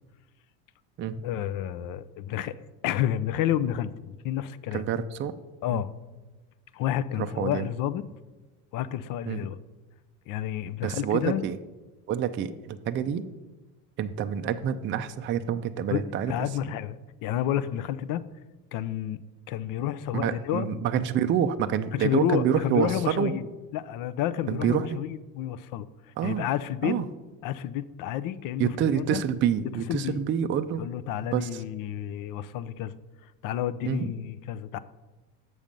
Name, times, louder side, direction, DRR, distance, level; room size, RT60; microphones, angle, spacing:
voice 1, 1.2-2.6 2.8-4.8 5.6-5.9 6.7-8.0 8.7-9.6 10.3-11.4 15.9-18.2 18.7-20.7 21.9-23.5 23.7-25.9 26.2-27.0 27.4-29.2 29.9-30.2 30.8-33.0 33.2-34.8, left 11 dB, 55° left, 14 dB, 0.5 m, -30 dB
voice 2, 4.7-5.3 5.7-5.8 7.2-7.7 9.3-9.4 10.8-11.6 12.1-13.3 14.0-16.7 20.1-23.3 24.5-25.0 26.2-26.5 26.8-27.1 28.6-30.9 31.3-31.6 33.8-34.1, right 8 dB, 30° right, 9 dB, 0.4 m, -27 dB
7.2 x 6.3 x 5.2 m, 1.2 s
supercardioid pair, 110°, 39 cm